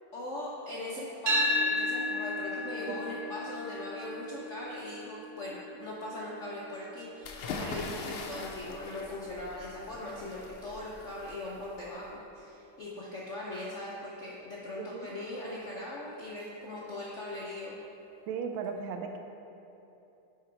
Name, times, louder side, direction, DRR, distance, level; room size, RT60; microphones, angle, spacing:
voice 1, 0.1-17.8, left 1 dB, 65° left, -5 dB, 0.7 m, -40 dB
sound 1, 1.3-9.4, left 1 dB, 40° right, 1.5 m, -35 dB
sound 2, 7.2-12.1, left 4 dB, 85° left, 1.5 m, -42 dB
voice 2, 14.8-15.2 18.3-19.2, right 6 dB, 80° right, 4 dB, 1.4 m, -36 dB
9.9 x 3.7 x 4.6 m, 2.9 s
omnidirectional pair, 2.2 m